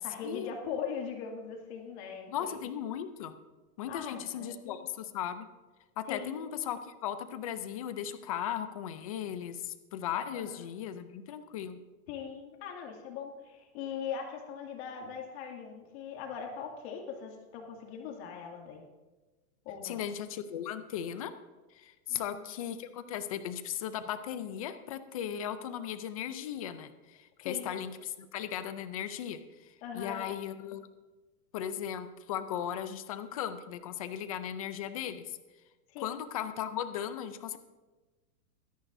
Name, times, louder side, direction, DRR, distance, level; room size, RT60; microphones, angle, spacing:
voice 1, 0.0-2.6 3.8-4.9 6.1-6.4 10.3-10.7 12.1-18.8 19.6-20.0 22.1-22.4 27.4-27.7 29.8-30.2 35.9-36.2, left 7 dB, 45° left, 1 dB, 2.4 m, -40 dB
voice 2, 2.3-3.3 3.8-5.5 6.0-11.8 19.8-21.3 21.7-30.9 31.5-35.4 36.0-37.6, left 9 dB, 25° left, 11 dB, 0.4 m, -37 dB
23.5 x 10.0 x 2.6 m, 1.2 s
supercardioid pair, 160°, 45 cm